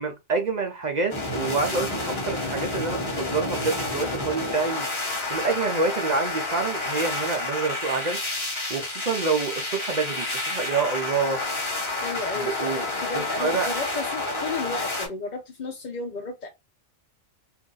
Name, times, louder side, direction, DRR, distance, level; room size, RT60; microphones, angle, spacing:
voice 1, 0.0-4.9 5.3-8.2 8.7-11.4 12.4-12.8 13.1-13.7, right 4 dB, 50° right, 0.5 m, -27 dB
sound 1, 1.1-15.1, left 2 dB, 25° left, 1.1 m, -29 dB
voice 2, 12.0-16.5, left 3 dB, 45° left, 0.7 m, -33 dB
2.7 x 2.5 x 3.8 m
omnidirectional pair, 1.2 m